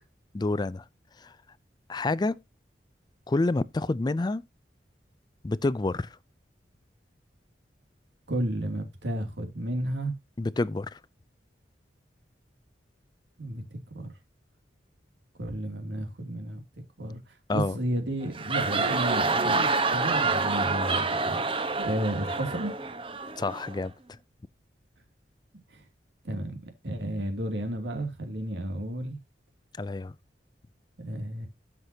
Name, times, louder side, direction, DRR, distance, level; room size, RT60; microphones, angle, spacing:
voice 1, 0.3-0.8 1.2-1.3 1.9-2.4 3.3-4.4 5.4-6.1 10.4-11.0 17.5-17.7 23.4-23.9 29.8-30.1, left 2 dB, 25° left, 0.4 m, -28 dB
voice 2, 8.3-10.1 13.4-13.6 13.9-14.1 15.3-16.6 17.0-21.4 21.8-22.7 25.7-25.8 26.2-26.6 26.8-29.2 31.0-31.5, right 1 dB, 90° right, 2.6 m, -32 dB
sound 1, 18.2-23.8, right 3 dB, 30° right, 1.0 m, -27 dB
13.0 x 6.0 x 2.8 m
head